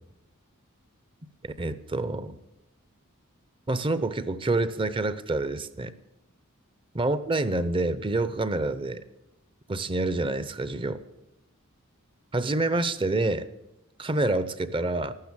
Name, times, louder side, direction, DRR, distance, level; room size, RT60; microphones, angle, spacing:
voice 1, 1.4-2.4 3.7-5.9 6.9-9.0 9.7-11.0 12.3-13.5 14.0-15.1, right 2 dB, 25° right, 14 dB, 0.7 m, -27 dB
14.5 x 12.5 x 7.2 m, 0.93 s
head